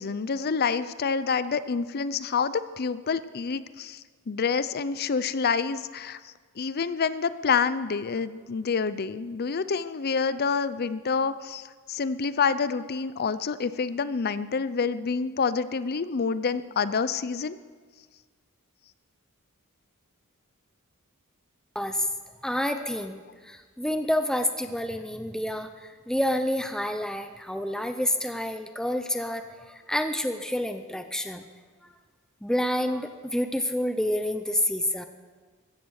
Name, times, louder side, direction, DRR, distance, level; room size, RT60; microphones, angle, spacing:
voice 1, 0.0-17.6, left 5 dB, 45° left, 15 dB, 0.5 m, -28 dB
voice 2, 21.7-22.1 22.4-31.5 32.4-35.1, left 1 dB, 5° left, 8 dB, 0.6 m, -28 dB
15.5 x 14.0 x 6.4 m, 1.5 s
head